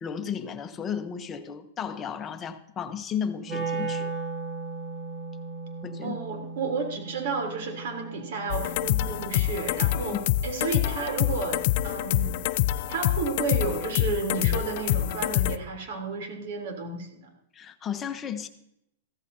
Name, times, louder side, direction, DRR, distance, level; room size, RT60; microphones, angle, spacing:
voice 1, 0.0-4.1 5.8-6.2 10.1-10.2 17.5-18.5, left 7 dB, 20° left, 7 dB, 1.0 m, -34 dB
Wind instrument woodwind instrument, 3.4-9.5, right 4 dB, 25° right, 2.3 m, -36 dB
voice 2, 6.0-10.2 10.4-12.4 12.8-17.3, right 4 dB, 65° right, 3 dB, 3.4 m, -32 dB
sound 1, 8.5-15.6, left 14 dB, 50° left, 0.4 m, -26 dB
15.5 x 14.5 x 2.8 m, 0.79 s
hypercardioid pair, 140°, 0 cm